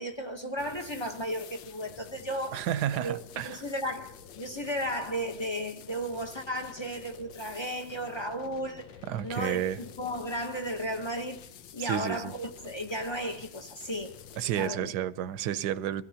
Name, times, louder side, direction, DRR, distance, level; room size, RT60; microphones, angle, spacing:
voice 1, 0.0-8.9 9.2-11.4 11.7-14.2 14.6-14.9, equal, 25° left, 0.6 m, -34 dB
sound 1, 0.6-14.7, left 9 dB, 85° left, 1.4 m, -49 dB
voice 2, 2.5-3.6 9.1-9.8 11.8-12.3 14.4-16.0, right 11 dB, 70° right, 1.2 m, -31 dB
23.5 x 16.0 x 2.8 m
omnidirectional pair, 1.9 m